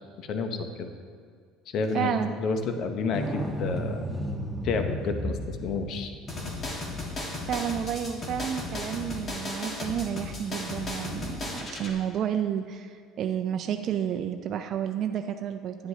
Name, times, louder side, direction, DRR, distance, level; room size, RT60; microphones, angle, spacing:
voice 1, 0.2-0.9 1.7-4.0 4.6-6.1, left 4 dB, 60° left, 6 dB, 0.8 m, -30 dB
voice 2, 1.9-2.3 7.5-15.9, right 9 dB, 55° right, 6 dB, 0.4 m, -31 dB
sound 1, 3.1-8.5 11.6-11.7, equal, ahead, 1.1 m, -35 dB
sound 2, 6.3-11.9, left 2 dB, 35° left, 1.7 m, -35 dB
9.6 x 9.5 x 2.8 m, 2.1 s
supercardioid pair, 95°, 0 cm